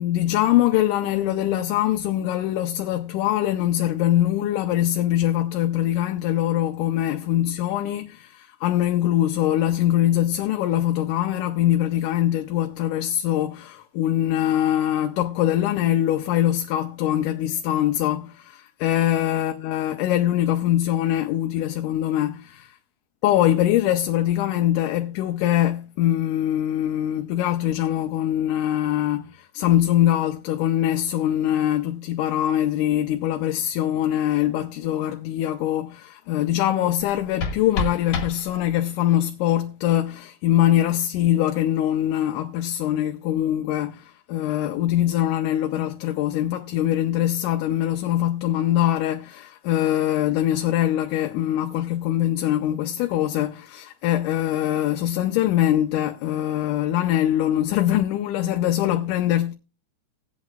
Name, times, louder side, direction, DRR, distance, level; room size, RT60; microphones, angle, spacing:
voice 1, 0.0-22.8 23.2-59.5, left 12 dB, 90° left, 2.2 m, -23 dB
sound 1, 37.0-39.0, left 3 dB, 55° left, 2.5 m, -31 dB
20.5 x 8.2 x 2.2 m
omnidirectional pair, 3.6 m